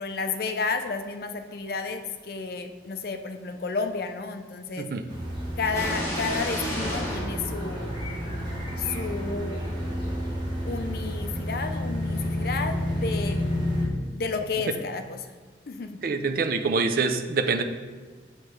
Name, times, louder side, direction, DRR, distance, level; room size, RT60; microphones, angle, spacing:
voice 1, 0.0-4.9 5.6-8.0 8.8-9.6 10.7-13.4 14.1-15.3 15.7-15.9, left 4 dB, 55° left, 7 dB, 0.4 m, -31 dB
sound 1, 5.1-13.9, equal, 25° right, 1.3 m, -30 dB
sound 2, 5.6-8.4, left 1 dB, 15° left, 1.2 m, -32 dB
voice 2, 16.0-17.6, right 4 dB, 50° right, 8 dB, 0.4 m, -25 dB
6.4 x 3.1 x 4.8 m, 1.5 s
head